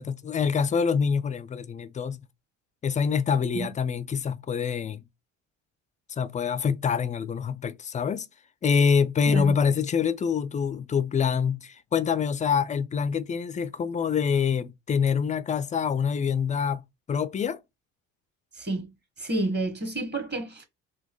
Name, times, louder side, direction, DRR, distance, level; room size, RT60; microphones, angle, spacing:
voice 1, 0.0-2.2 2.8-5.0 6.1-8.3 8.6-16.8 17.1-17.6, left 6 dB, 20° left, 0.3 m, -25 dB
voice 2, 18.6-18.9 19.2-20.7, right 2 dB, 25° right, 1.2 m, -29 dB
4.0 x 2.2 x 2.9 m
hypercardioid pair, 70°, 39 cm